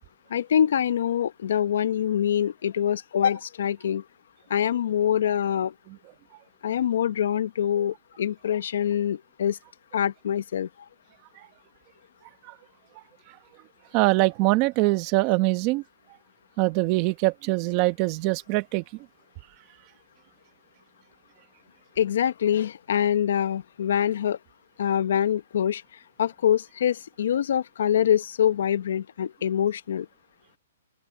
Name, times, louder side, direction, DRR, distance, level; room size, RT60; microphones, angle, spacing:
voice 1, 0.3-4.0 4.5-5.7 6.6-9.6 9.9-10.7 22.0-24.4 24.8-25.8 26.2-30.1, left 9 dB, 60° left, 0.9 m, -24 dB
voice 2, 13.9-15.8 16.6-18.8, right 21 dB, 25° right, 1.0 m, -23 dB
open air
hypercardioid pair, 170°, 0 cm